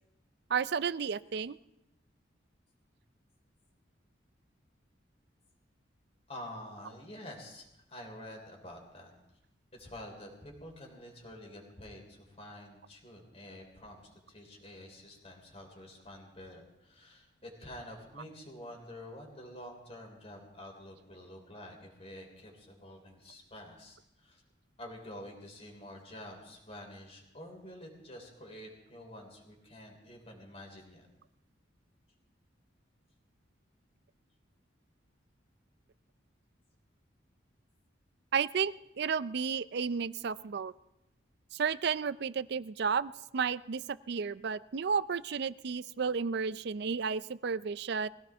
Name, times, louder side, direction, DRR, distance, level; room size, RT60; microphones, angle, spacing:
voice 1, 0.5-1.6 38.3-40.7 41.5-48.1, right 6 dB, 60° right, 17 dB, 0.4 m, -32 dB
voice 2, 6.3-9.1 9.7-24.4 24.8-31.1, left 1 dB, 35° left, 1 dB, 3.5 m, -48 dB
21.5 x 16.5 x 3.5 m, 0.88 s
head